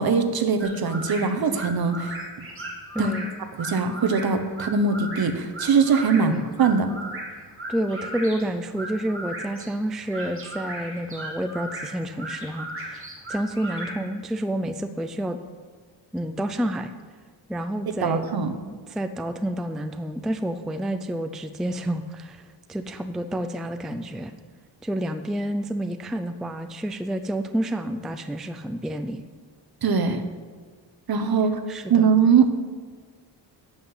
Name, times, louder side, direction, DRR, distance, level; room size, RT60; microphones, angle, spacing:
voice 1, 0.0-2.1 3.0-3.1 3.6-6.3 6.6-6.9 18.0-18.5 29.8-30.2 31.1-31.5 31.9-32.5, right 5 dB, 50° right, 8 dB, 1.1 m, -21 dB
sound 1, 0.6-14.0, right 1 dB, 30° right, 2.8 m, -37 dB
voice 2, 2.9-3.3 6.2-6.4 7.7-15.4 16.1-16.9 17.5-18.3 18.9-24.3 24.8-29.2 31.7-32.1, right 1 dB, ahead, 8 dB, 0.4 m, -29 dB
11.5 x 5.8 x 8.0 m, 1.5 s
wide cardioid pair, 125°, 45 cm